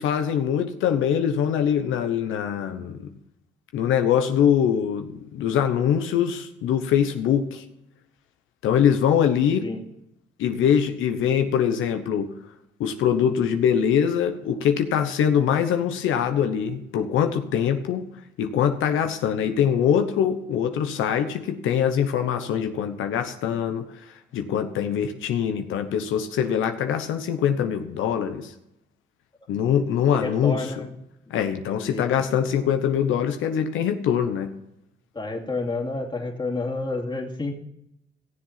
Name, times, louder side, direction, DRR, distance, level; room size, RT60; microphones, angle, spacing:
voice 1, 0.0-3.1 3.7-7.6 8.6-9.7 10.4-12.3 12.8-18.1 18.4-28.5 29.5-30.8 31.3-34.5, left 8 dB, 85° left, 7 dB, 1.0 m, -23 dB
voice 2, 30.1-30.9 31.9-32.0 35.1-37.5, left 3 dB, 25° left, 1 dB, 2.4 m, -29 dB
16.0 x 7.6 x 5.7 m, 0.83 s
cardioid pair, 90°, 20 cm